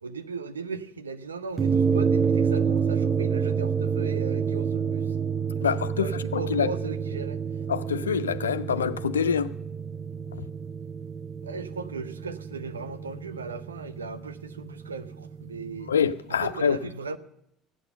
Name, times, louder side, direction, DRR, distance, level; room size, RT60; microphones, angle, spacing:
voice 1, 0.0-5.2 5.6-5.7 5.9-7.4 11.4-15.9 16.3-17.2, right 4 dB, 80° right, 0.7 m, -37 dB
sound 1, 1.6-16.1, right 6 dB, 30° right, 0.5 m, -29 dB
voice 2, 5.6-6.7 7.7-9.5 10.3-10.5 15.9-16.8, left 7 dB, 80° left, 0.4 m, -26 dB
14.5 x 8.5 x 6.8 m
figure-of-eight pair, 60°, 0 cm